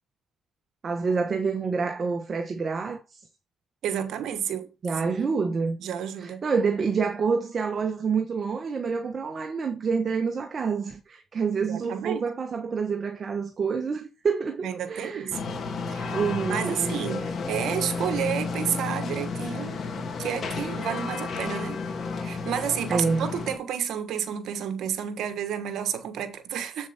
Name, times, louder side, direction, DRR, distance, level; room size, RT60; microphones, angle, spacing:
voice 1, 0.8-3.2 4.8-5.8 6.2-15.3 16.1-16.9 22.9-23.3, right 5 dB, 45° right, 1.4 m, -27 dB
voice 2, 3.8-4.7 5.0-5.2 5.8-6.4 11.7-12.2 14.6-15.4 15.9-16.2 16.5-21.8 22.2-26.9, right 9 dB, 75° right, 1.5 m, -31 dB
sound 1, 15.3-23.6, left 4 dB, 55° left, 3.2 m, -32 dB
8.0 x 7.3 x 4.3 m
cardioid pair, 90°, 0 cm